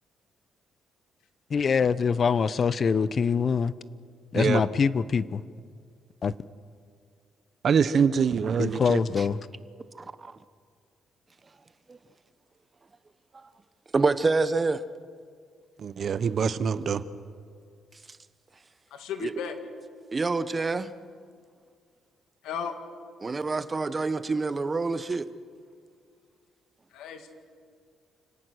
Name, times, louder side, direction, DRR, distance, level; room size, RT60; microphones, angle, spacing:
voice 1, 1.5-3.7 4.3-5.4 6.2-6.3 8.6-9.4, left 6 dB, 45° left, 0.7 m, -24 dB
voice 2, 7.6-9.0 15.8-17.0, right 6 dB, 55° right, 0.9 m, -24 dB
voice 3, 10.0-10.3 11.9-12.0 13.9-14.8 19.2-19.3 20.1-20.9 23.2-25.3, right 3 dB, 30° right, 0.9 m, -27 dB
voice 4, 18.9-19.6 22.4-22.7 26.9-27.3, left 7 dB, 90° left, 2.2 m, -34 dB
29.0 x 18.0 x 6.4 m
cardioid pair, 90°, 0 cm